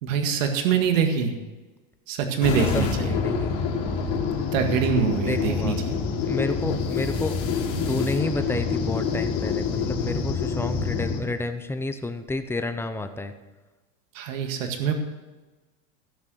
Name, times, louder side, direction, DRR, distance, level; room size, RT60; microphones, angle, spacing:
voice 1, 0.0-1.3 2.1-3.1 4.5-6.0 14.1-14.9, right 6 dB, 80° right, 5 dB, 1.9 m, -24 dB
sound 1, 2.4-11.2, left 5 dB, 60° left, 3.1 m, -27 dB
voice 2, 2.6-3.6 5.2-5.8 6.2-13.3, left 2 dB, 5° left, 9 dB, 0.7 m, -30 dB
16.0 x 6.5 x 6.3 m, 1.2 s
supercardioid pair, 125°, 39 cm